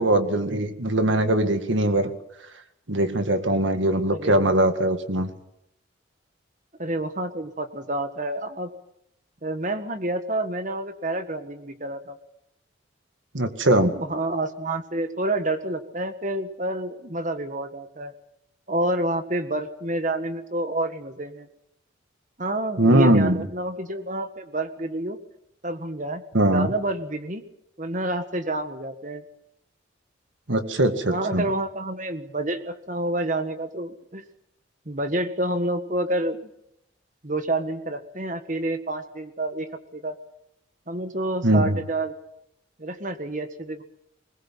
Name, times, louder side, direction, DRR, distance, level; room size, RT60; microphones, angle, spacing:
voice 1, 0.0-2.1 2.9-5.3 13.3-13.9 22.8-23.5 26.3-26.7 30.5-31.4 41.4-41.8, right 1 dB, 75° right, 8 dB, 2.0 m, -21 dB
voice 2, 4.1-4.6 6.8-8.7 9.4-12.2 13.9-18.1 18.7-21.5 22.4-25.2 25.6-27.4 27.8-29.2 31.1-34.2 34.8-36.4 37.2-40.1 40.9-42.1 42.8-43.8, right 1 dB, 40° right, 9 dB, 1.7 m, -28 dB
21.5 x 20.5 x 7.5 m, 0.80 s
head